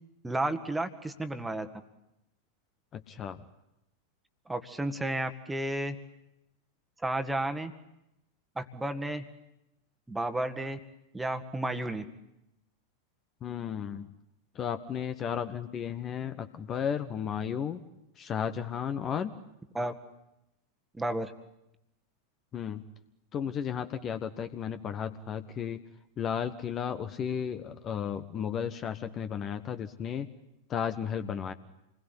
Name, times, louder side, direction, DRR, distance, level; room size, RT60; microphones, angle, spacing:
voice 1, 0.2-1.7 4.5-6.0 7.0-7.7 8.6-9.2 10.1-10.8 11.1-12.0 19.7-19.9 21.0-21.3, right 1 dB, 5° right, 8 dB, 1.8 m, -32 dB
voice 2, 2.9-3.4 13.4-14.1 14.5-17.8 18.2-19.3 22.5-22.8 23.3-25.8 26.2-30.3 30.7-31.5, left 8 dB, 30° left, 10 dB, 1.3 m, -34 dB
28.0 x 21.0 x 9.9 m, 0.87 s
figure-of-eight pair, 90°, 0 cm